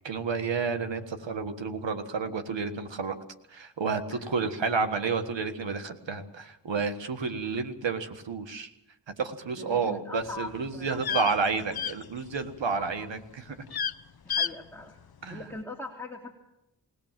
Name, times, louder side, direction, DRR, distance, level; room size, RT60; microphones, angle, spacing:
voice 1, 0.0-3.1 3.5-8.7 9.2-13.6 15.2-15.4, right 5 dB, 85° right, 8 dB, 1.7 m, -30 dB
voice 2, 9.5-11.8 12.7-13.1 14.2-15.0 15.3-16.3, left 2 dB, 5° left, 0 dB, 2.8 m, -42 dB
sound 1, 10.2-12.7 12.9-13.3 13.6-14.0 14.3-14.5 14.8-14.9, left 8 dB, 60° left, 0.8 m, -32 dB
21.0 x 17.5 x 7.6 m, 0.87 s
cardioid pair, 40°, 43 cm